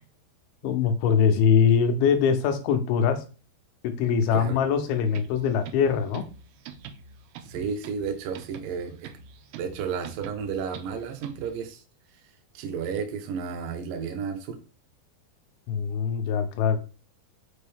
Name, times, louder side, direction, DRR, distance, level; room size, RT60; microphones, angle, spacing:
voice 1, 0.6-3.2 3.8-6.2 15.7-16.8, left 7 dB, 80° left, 8 dB, 2.6 m, -22 dB
sound 1, 5.1-11.6, right 7 dB, 90° right, 2.7 m, -46 dB
voice 2, 7.4-9.1 9.6-11.8 12.5-14.6, right 6 dB, 70° right, 4 dB, 2.3 m, -32 dB
5.4 x 5.2 x 3.4 m, 0.35 s
omnidirectional pair, 4.6 m